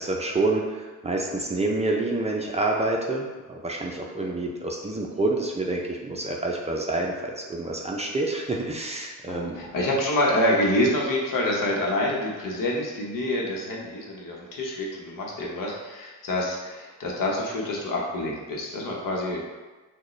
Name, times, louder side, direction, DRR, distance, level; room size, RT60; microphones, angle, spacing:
voice 1, 0.0-9.6, right 2 dB, 20° right, -1 dB, 0.4 m, -28 dB
voice 2, 9.3-19.4, left 1 dB, 80° left, -2 dB, 1.0 m, -27 dB
6.3 x 2.2 x 3.1 m, 1.3 s
wide cardioid pair, 155°, 33 cm